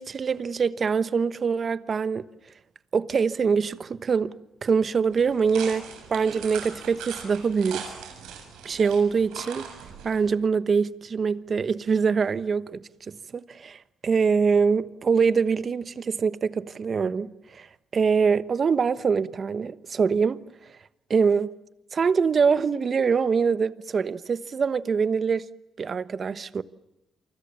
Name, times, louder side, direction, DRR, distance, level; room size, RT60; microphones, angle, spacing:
voice 1, 0.0-2.3 2.9-4.3 4.6-7.9 8.6-9.7 10.0-17.7 17.9-20.4 21.1-21.5 21.9-25.5 25.8-26.6, right 5 dB, 45° right, 1.2 m, -24 dB
sound 1, 5.1-10.3, right 7 dB, 90° right, 6.8 m, -40 dB
29.0 x 24.5 x 7.2 m
cardioid pair, 90°, 0 cm